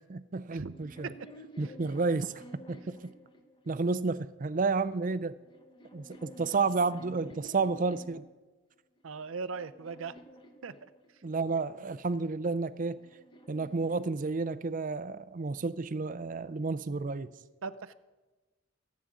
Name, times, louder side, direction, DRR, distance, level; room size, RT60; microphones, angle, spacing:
voice 1, 0.1-1.1 1.6-2.2 3.7-5.3 5.9-8.3 11.2-13.0 13.5-17.3, right 4 dB, 40° right, 15 dB, 0.5 m, -31 dB
sound 1, 0.6-4.0 4.9-8.3 9.0-11.4 12.4-14.8, equal, 25° left, 1.0 m, -53 dB
voice 2, 9.0-10.2 10.6-11.2 17.6-17.9, right 4 dB, 85° right, 14 dB, 0.6 m, -39 dB
24.0 x 8.4 x 3.8 m, 1.2 s
head